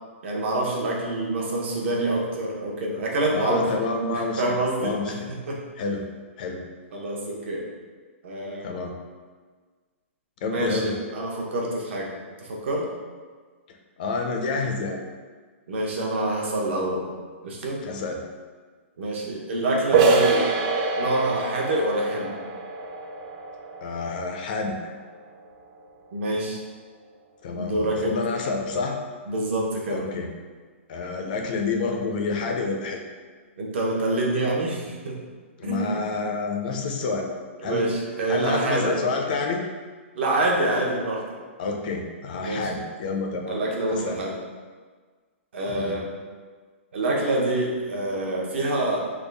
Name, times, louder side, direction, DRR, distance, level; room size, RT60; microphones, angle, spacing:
voice 1, 0.2-3.7 4.1-5.6 6.9-7.7 8.2-8.7 10.4-12.1 12.5-12.9 15.7-17.0 17.4-17.8 19.0-20.5 21.0-22.4 26.1-26.6 27.5-28.2 29.3-30.0 33.6-35.2 35.6-36.1 37.6-39.0 40.1-41.2 42.4-42.7 43.5-44.3 45.5-46.1 46.9-49.1, right 2 dB, 60° right, -2 dB, 0.8 m, -26 dB
voice 2, 3.3-4.4 4.8-5.3 5.8-6.0 6.4-6.6 8.6-8.9 10.4-10.9 14.0-15.0 17.8-18.2 23.8-24.8 27.4-29.0 29.9-30.3 30.9-33.0 35.6-37.3 37.6-38.0 38.3-39.6 41.6-43.6 43.9-44.2 45.7-46.0, left 4 dB, 40° left, 2 dB, 0.4 m, -28 dB
sound 1, 19.9-25.4, right 3 dB, 30° right, 0.3 m, -25 dB
3.5 x 2.3 x 3.3 m, 1.5 s
hypercardioid pair, 160°, 7 cm